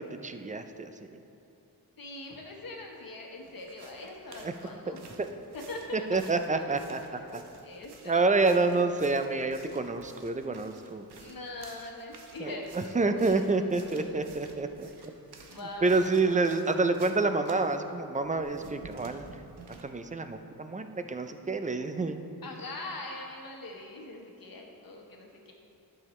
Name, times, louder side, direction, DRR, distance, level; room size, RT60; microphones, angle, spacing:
voice 1, 0.2-0.9 4.4-4.5 6.1-7.4 8.1-11.1 12.4-14.9 15.8-19.3 19.8-22.2, right 3 dB, 20° right, 8 dB, 0.3 m, -28 dB
voice 2, 2.0-5.0 5.5-6.3 6.5-6.7 7.0-8.8 11.2-14.2 14.8-16.4 22.4-25.5, left 2 dB, 60° left, 0 dB, 1.2 m, -43 dB
sound 1, 3.4-17.8 18.2-19.8, right 4 dB, 85° right, 0.9 m, -53 dB
11.5 x 6.8 x 3.2 m, 2.7 s
wide cardioid pair, 120°, 38 cm